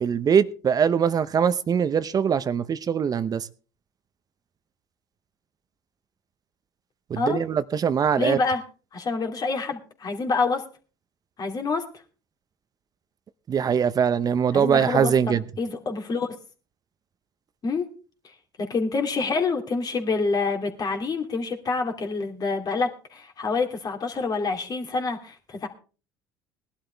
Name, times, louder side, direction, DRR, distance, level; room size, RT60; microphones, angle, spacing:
voice 1, 0.0-3.5 7.1-8.4 13.5-15.4, right 7 dB, 40° right, 0.8 m, -22 dB
voice 2, 8.2-8.6 8.9-10.6 11.4-11.8 14.5-16.3 17.6-17.9 18.6-25.7, left 4 dB, 40° left, 2.9 m, -27 dB
19.0 x 11.5 x 3.4 m
hypercardioid pair, 70°, 10 cm